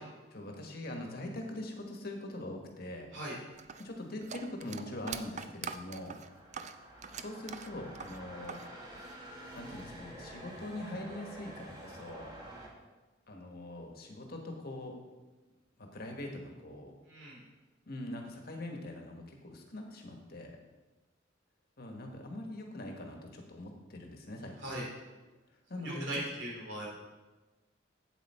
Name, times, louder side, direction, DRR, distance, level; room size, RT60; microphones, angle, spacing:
voice 1, 0.3-3.1 3.8-6.2 7.1-8.6 9.5-12.3 13.3-15.0 15.8-16.9 17.9-20.6 21.8-24.8 25.7-26.1, left 1 dB, 55° left, 2 dB, 1.4 m, -42 dB
sound 1, 3.6-8.7 8.9-9.8, right 6 dB, 40° right, 0.4 m, -43 dB
sound 2, 5.2-12.7, right 1 dB, 20° right, 1.5 m, -49 dB
voice 2, 17.1-17.4 24.6-24.8 25.8-26.9, right 1 dB, 75° right, -3 dB, 3.2 m, -39 dB
8.1 x 7.9 x 4.3 m, 1.2 s
head